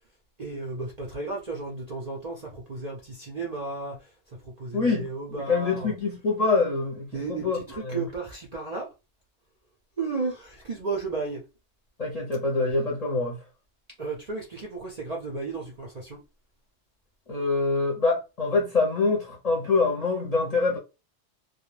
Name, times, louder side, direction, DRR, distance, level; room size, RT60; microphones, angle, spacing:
voice 1, 0.4-4.1 4.4-5.9 7.1-8.9 10.0-11.4 14.0-16.2, right 3 dB, 50° right, 0.5 m, -33 dB
voice 2, 4.7-8.0 12.0-13.4 17.3-20.8, left 3 dB, 40° left, 0.6 m, -25 dB
2.3 x 2.1 x 3.1 m
omnidirectional pair, 1.3 m